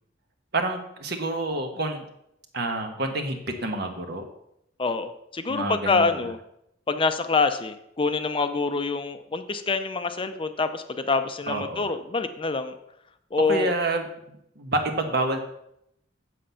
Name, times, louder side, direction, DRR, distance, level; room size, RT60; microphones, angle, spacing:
voice 1, 0.5-2.0 2.5-4.3 5.5-6.1 11.5-11.9 13.4-15.4, right 2 dB, 60° right, 5 dB, 1.4 m, -28 dB
voice 2, 4.8-6.4 6.9-12.7 13.3-13.7, left 4 dB, 30° left, 9 dB, 0.6 m, -26 dB
7.7 x 7.7 x 5.7 m, 0.78 s
head